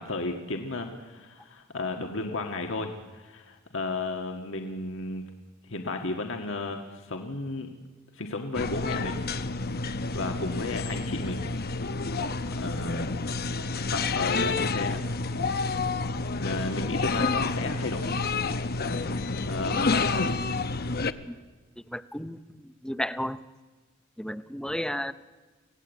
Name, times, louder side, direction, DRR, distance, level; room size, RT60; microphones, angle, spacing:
voice 1, 0.0-5.3 5.7-7.7 8.1-9.2 10.1-11.5 12.6-13.2 13.9-15.0 16.4-18.2 19.4-20.3, left 2 dB, 65° left, 4 dB, 1.7 m, -33 dB
sound 1, 8.5-21.1, left 3 dB, 50° left, 0.9 m, -29 dB
voice 2, 21.9-23.4 24.2-25.1, left 1 dB, 5° left, 13 dB, 0.7 m, -33 dB
25.5 x 17.5 x 8.2 m, 1.3 s
head